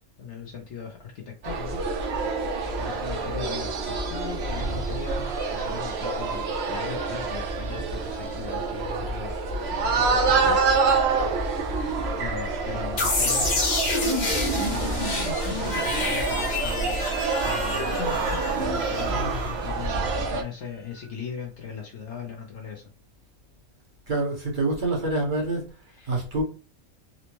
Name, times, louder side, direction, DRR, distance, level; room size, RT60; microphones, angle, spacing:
voice 1, 0.2-1.8 2.8-10.6 12.2-13.6 14.3-15.3 15.6-17.0 17.4-18.0 18.6-22.9 25.9-26.2, left 6 dB, 65° left, 1.0 m, -39 dB
sound 1, 1.4-20.4, right 4 dB, 60° right, 0.9 m, -27 dB
sound 2, 13.0-19.8, left 2 dB, 40° left, 0.9 m, -28 dB
voice 2, 24.1-25.7 26.1-26.4, right 2 dB, 40° right, 1.3 m, -26 dB
4.3 x 2.1 x 3.0 m
omnidirectional pair, 1.3 m